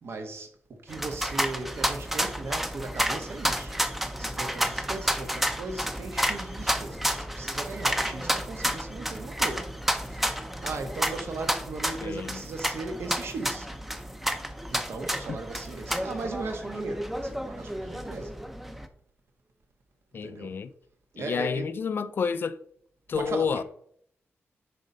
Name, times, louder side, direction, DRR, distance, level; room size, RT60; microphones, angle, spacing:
voice 1, 0.0-3.8 4.2-9.7 10.0-10.3 10.6-13.7 14.7-18.3 20.1-20.5 21.1-21.7 23.1-23.6, right 3 dB, 65° right, 1.4 m, -38 dB
sound 1, 0.9-18.9, equal, 5° right, 0.6 m, -31 dB
voice 2, 12.0-12.4 15.3-15.4 20.1-20.7 21.2-22.6 23.1-23.6, left 6 dB, 50° left, 0.5 m, -29 dB
10.0 x 4.2 x 5.3 m
wide cardioid pair, 180°, 5 cm